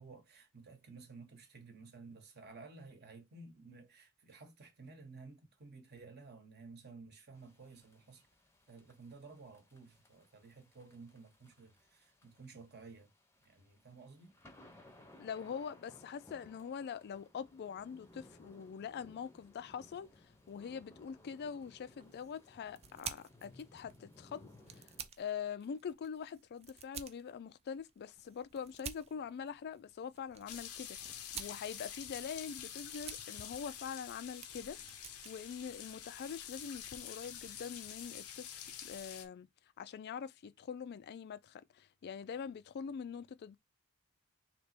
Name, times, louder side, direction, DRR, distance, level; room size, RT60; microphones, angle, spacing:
voice 1, 0.0-8.3 8.7-13.1 13.4-14.3, right 4 dB, 50° right, 1.0 m, -54 dB
sound 1, 7.3-25.1, left 1 dB, 10° left, 0.7 m, -62 dB
voice 2, 15.2-34.8 35.2-39.5 39.8-43.6, left 7 dB, 50° left, 0.3 m, -44 dB
sound 2, 21.9-36.5, right 8 dB, 30° right, 0.4 m, -52 dB
sound 3, 30.5-39.3, left 9 dB, 80° left, 0.7 m, -47 dB
3.3 x 2.9 x 4.2 m
head